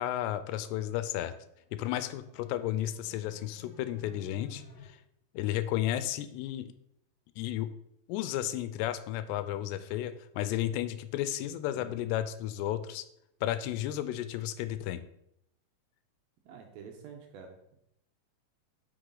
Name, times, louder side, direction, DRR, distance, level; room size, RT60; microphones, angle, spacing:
voice 1, 0.0-1.3 1.7-5.0 5.3-6.7 7.4-7.7 8.1-13.1 13.4-15.0, left 12 dB, 90° left, 12 dB, 2.7 m, -33 dB
sound 1, 1.5-4.9, left 5 dB, 45° left, 3.0 m, -56 dB
voice 2, 16.5-17.6, right 6 dB, 80° right, 3 dB, 2.3 m, -48 dB
7.9 x 6.1 x 3.9 m, 0.76 s
omnidirectional pair, 4.8 m